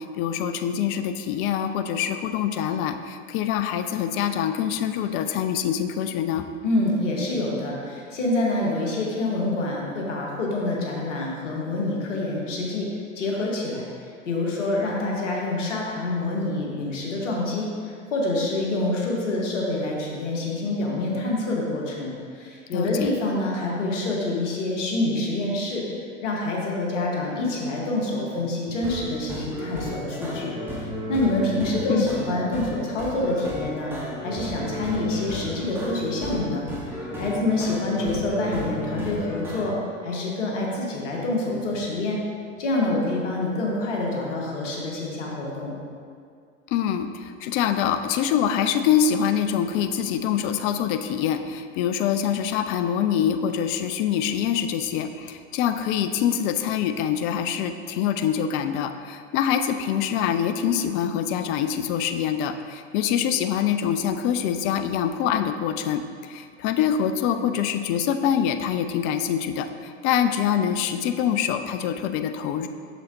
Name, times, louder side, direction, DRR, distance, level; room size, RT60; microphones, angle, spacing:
voice 1, 0.0-6.5 22.7-23.1 31.9-32.1 46.7-66.0 66.3-72.7, left 9 dB, 35° left, 9 dB, 0.4 m, -25 dB
voice 2, 6.6-12.9 13.1-25.8 26.2-30.5 31.1-33.9 34.2-39.8 40.0-42.2 42.6-45.7, left 2 dB, 70° left, -2 dB, 1.5 m, -26 dB
sound 1, 28.7-39.6, equal, 5° right, 1.5 m, -33 dB
6.9 x 6.3 x 2.8 m, 2.2 s
figure-of-eight pair, 90°, 38 cm